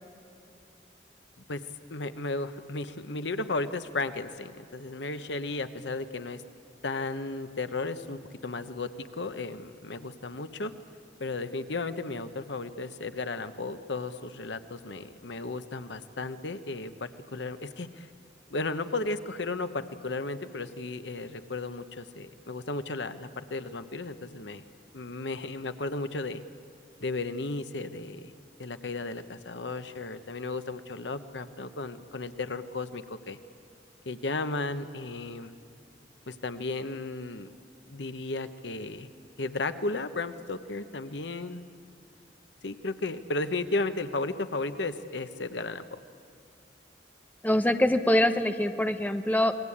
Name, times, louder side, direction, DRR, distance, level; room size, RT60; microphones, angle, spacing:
voice 1, 1.9-6.4 6.8-10.7 11.2-18.1 18.5-24.6 24.9-26.4 27.0-28.3 28.6-33.4 34.1-35.5 36.3-37.5 37.9-39.1 39.4-41.6 42.6-46.0, left 3 dB, 80° left, 10 dB, 1.1 m, -34 dB
voice 2, 47.4-49.5, left 1 dB, 10° left, 7 dB, 0.9 m, -24 dB
28.0 x 21.0 x 8.7 m, 2.6 s
head